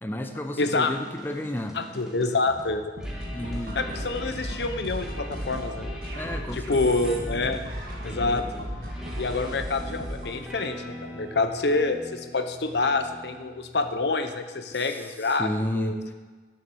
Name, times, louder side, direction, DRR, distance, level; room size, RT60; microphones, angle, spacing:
voice 1, 0.0-1.8 3.3-4.0 6.1-7.0 8.2-8.4 14.7-16.0, left 1 dB, 10° left, 5 dB, 0.6 m, -32 dB
voice 2, 0.6-0.9 1.7-2.9 3.7-5.9 6.5-7.6 8.0-8.4 9.2-16.0, left 3 dB, 70° left, 8 dB, 0.9 m, -27 dB
sound 1, 0.7-14.2, left 1 dB, 5° right, 1.6 m, -42 dB
sound 2, 3.0-10.4, equal, 55° right, 1.8 m, -35 dB
10.5 x 7.2 x 6.9 m, 1.4 s
head